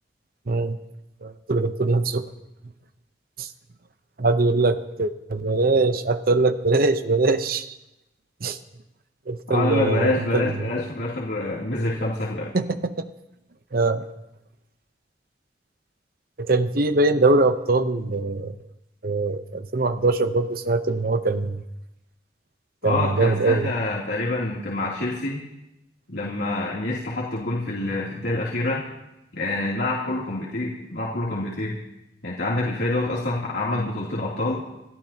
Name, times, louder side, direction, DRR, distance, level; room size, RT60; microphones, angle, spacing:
voice 1, 0.5-0.8 1.2-2.3 3.4-3.5 4.2-7.8 8.4-8.6 9.3-10.6 12.5-13.0 13.7-14.1 16.4-18.5 19.0-21.6 22.8-23.7, right 3 dB, 55° right, 10 dB, 0.8 m, -22 dB
voice 2, 9.5-12.5 22.8-25.4 26.1-28.8 29.3-31.8 32.2-34.6, left 2 dB, 80° left, -6 dB, 2.9 m, -26 dB
28.5 x 14.0 x 2.9 m, 0.93 s
head